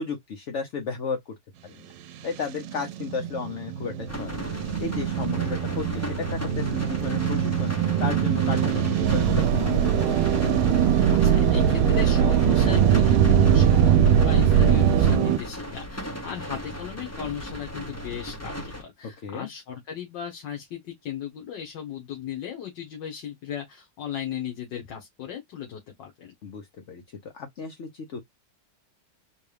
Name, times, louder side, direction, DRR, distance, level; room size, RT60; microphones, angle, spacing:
voice 1, 0.0-1.3 1.6-1.9 2.2-4.5 4.8-7.7 8.0-10.2 19.0-19.5 26.4-28.2, left 5 dB, 55° left, 0.9 m, -34 dB
sound 1, 2.1-15.4, right 9 dB, 90° right, 1.3 m, -26 dB
sound 2, 4.1-18.8, equal, 20° left, 0.4 m, -36 dB
sound 3, 9.0-15.2, right 8 dB, 75° right, 0.8 m, -20 dB
voice 2, 11.1-26.3, left 8 dB, 80° left, 1.8 m, -36 dB
4.4 x 2.3 x 3.3 m
omnidirectional pair, 1.9 m